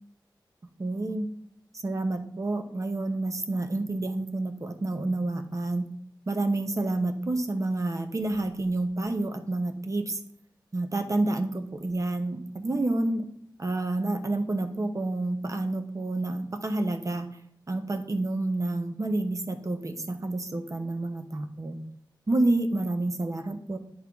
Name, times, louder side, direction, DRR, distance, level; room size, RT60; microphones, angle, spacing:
voice 1, 0.8-1.3 1.8-5.9 6.3-10.2 10.7-13.2 13.6-17.3 17.7-21.8 22.3-23.8, right 2 dB, 40° right, 6 dB, 0.8 m, -29 dB
10.5 x 3.6 x 3.6 m, 0.68 s
wide cardioid pair, 70°, 8 cm